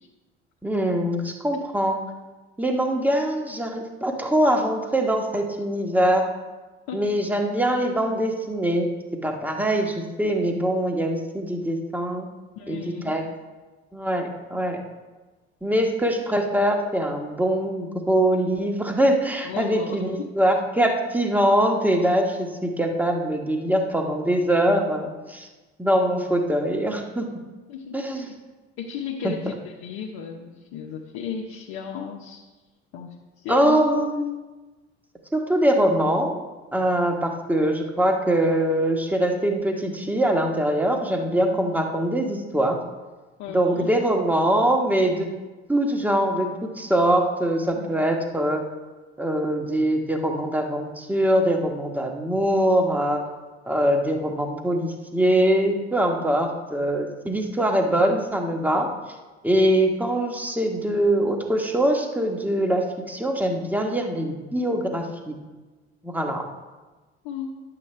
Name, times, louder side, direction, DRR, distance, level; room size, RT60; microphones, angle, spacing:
voice 1, 0.6-2.0 2.6-6.3 6.9-8.9 9.2-12.3 12.7-13.2 13.9-14.8 15.6-25.5 25.8-27.3 27.9-28.3 29.2-29.3 33.5-34.2 35.3-36.4 36.7-42.8 43.5-45.3 45.7-48.6 49.2-53.2 53.7-58.9 59.4-65.4 66.0-66.4, right 1 dB, 5° right, 3 dB, 1.4 m, -23 dB
voice 2, 12.6-13.1 14.5-14.6 19.4-20.3 27.7-28.3 28.8-32.4 32.9-33.8 43.4-44.0 47.7-48.0 67.2-67.6, left 7 dB, 55° left, 0 dB, 1.0 m, -35 dB
10.5 x 7.7 x 3.3 m, 1.2 s
figure-of-eight pair, 60°, 32 cm